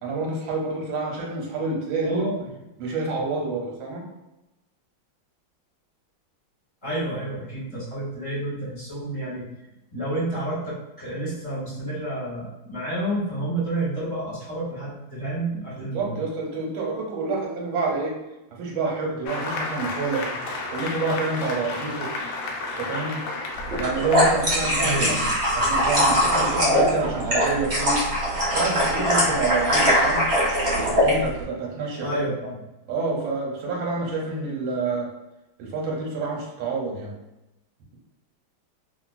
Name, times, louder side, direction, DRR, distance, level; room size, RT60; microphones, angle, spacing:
voice 1, 0.0-2.3 2.8-4.1 15.9-18.1 18.6-20.3 20.7-22.1 22.8-23.2 23.8-25.2 25.5-28.1 28.5-30.2 30.9-32.2 32.9-35.1 35.6-37.1, right 3 dB, 90° right, -1 dB, 1.5 m, -28 dB
voice 2, 2.0-2.5 6.8-9.5 9.9-16.2 24.8-25.3 32.0-32.6, right 1 dB, 25° left, -10 dB, 1.4 m, -30 dB
Applause, 19.3-26.5, left 2 dB, 80° left, 1.4 m, -33 dB
sound 1, 23.7-31.1, equal, 45° right, 0.8 m, -21 dB
2.9 x 2.8 x 2.3 m, 0.94 s
omnidirectional pair, 2.2 m